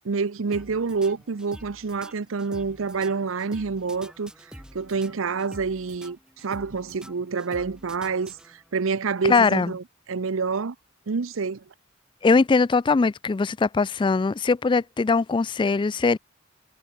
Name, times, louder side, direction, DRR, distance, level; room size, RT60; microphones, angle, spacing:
voice 1, 0.0-4.3 4.7-10.8 11.1-11.6, right 4 dB, 75° right, 0.7 m, -27 dB
sound 1, 0.5-8.8, equal, 5° right, 3.1 m, -47 dB
voice 2, 9.3-9.7 12.2-16.2, left 4 dB, 25° left, 0.3 m, -21 dB
head